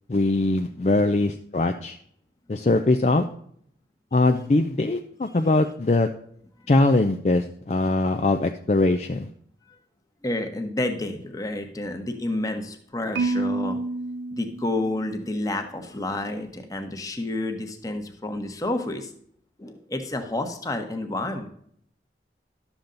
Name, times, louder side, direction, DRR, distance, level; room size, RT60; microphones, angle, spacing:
voice 1, 0.1-2.0 2.5-3.3 4.1-6.1 6.7-9.3, left 2 dB, 40° left, 5 dB, 0.5 m, -21 dB
voice 2, 10.2-13.8 14.3-19.1 19.6-21.5, left 2 dB, 20° left, 5 dB, 1.1 m, -30 dB
Marimba xylophone, 13.1-15.3, right 3 dB, 70° right, 0.4 m, -29 dB
11.5 x 7.1 x 3.9 m, 0.66 s
head